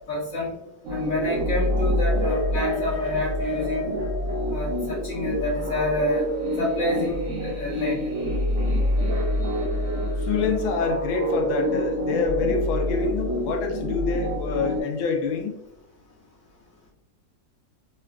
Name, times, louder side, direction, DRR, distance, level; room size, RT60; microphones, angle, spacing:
voice 1, 0.1-0.6 0.9-3.9 4.5-6.2 6.6-8.1, left 1 dB, 55° left, -8 dB, 0.9 m, -28 dB
sound 1, 0.8-14.8, equal, 80° right, 0.6 m, -26 dB
voice 2, 10.2-15.6, left 4 dB, 90° left, 5 dB, 1.4 m, -26 dB
3.9 x 2.3 x 2.3 m, 0.88 s
omnidirectional pair, 2.1 m